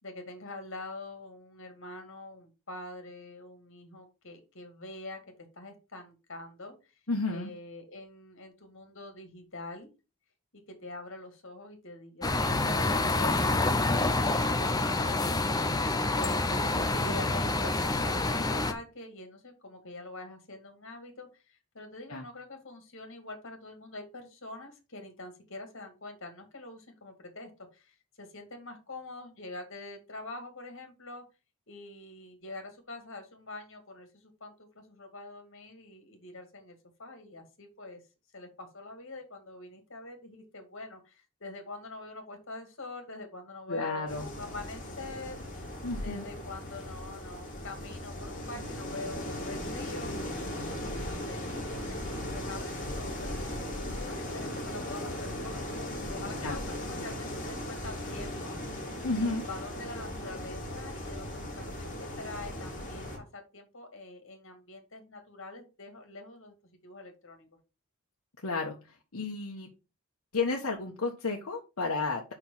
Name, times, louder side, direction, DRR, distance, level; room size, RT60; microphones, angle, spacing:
voice 1, 0.0-5.2 5.5-6.7 7.3-9.9 10.7-15.4 16.2-31.2 31.7-38.0 38.3-45.6 46.0-50.1 51.0-52.0 52.3-58.6 59.1-66.5 66.8-67.5, left 2 dB, 60° left, 5 dB, 2.1 m, -45 dB
voice 2, 7.1-7.5 22.1-22.2 43.7-44.3 45.8-46.2 56.4-56.6 59.0-59.4 68.4-68.7 69.1-69.7 70.3-72.3, left 3 dB, 75° left, -1 dB, 1.2 m, -32 dB
sound 1, 12.2-18.7, left 2 dB, 15° left, 0.7 m, -27 dB
sound 2, 44.1-63.2, left 1 dB, 40° left, 2.7 m, -38 dB
5.6 x 4.6 x 5.6 m, 0.29 s
head